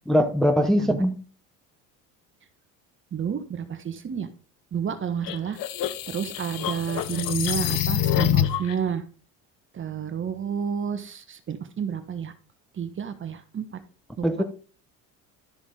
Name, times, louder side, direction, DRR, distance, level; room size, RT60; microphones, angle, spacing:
voice 1, 0.1-1.2 14.2-14.4, equal, ahead, 1.0 m, -21 dB
voice 2, 0.6-1.0 3.1-4.3 4.7-5.6 6.1-9.0 9.7-12.3 12.7-13.8 14.2-14.4, right 7 dB, 35° right, 1.4 m, -30 dB
sound 1, 5.2-8.7, left 10 dB, 60° left, 1.0 m, -26 dB
12.5 x 5.9 x 3.9 m
supercardioid pair, 100°, 37 cm